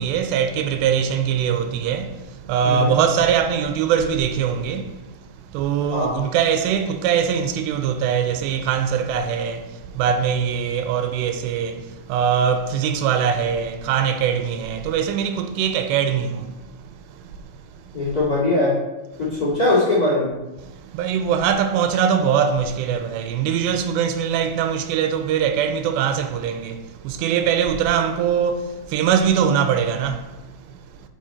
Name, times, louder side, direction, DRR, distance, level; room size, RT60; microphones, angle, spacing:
voice 1, 0.0-2.1 2.5-4.8 5.5-9.6 10.0-11.7 12.1-16.3 21.0-26.7 27.1-28.6 28.9-30.2, right 8 dB, 90° right, 2.8 m, -21 dB
voice 2, 17.9-18.8 19.2-20.3, left 2 dB, 30° left, 1.9 m, -20 dB
7.3 x 6.0 x 4.3 m
omnidirectional pair, 4.9 m